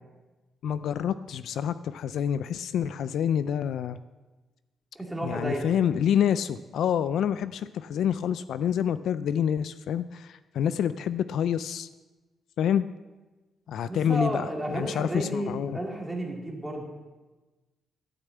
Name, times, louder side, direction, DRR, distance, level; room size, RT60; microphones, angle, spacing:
voice 1, 0.6-4.0 5.2-11.9 12.6-12.9 13.7-15.8, left 9 dB, 60° left, 13 dB, 0.3 m, -27 dB
voice 2, 4.9-5.7 13.8-16.9, right 1 dB, 5° right, -1 dB, 2.2 m, -32 dB
12.0 x 6.7 x 8.4 m, 1.2 s
cardioid pair, 175°, 0 cm